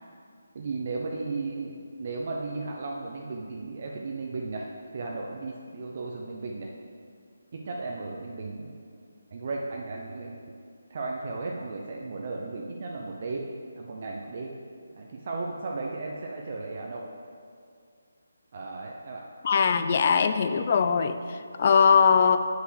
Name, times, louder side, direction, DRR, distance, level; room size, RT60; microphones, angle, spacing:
voice 1, 0.5-4.7 4.9-6.7 7.5-8.8 9.3-10.4 10.9-13.5 13.8-14.5 14.9-17.0 18.5-19.2, right 3 dB, 45° right, -1 dB, 0.7 m, -35 dB
voice 2, 19.4-22.4, left 6 dB, 40° left, 9 dB, 0.5 m, -21 dB
6.0 x 5.6 x 6.3 m, 2.3 s
figure-of-eight pair, 155°, 0 cm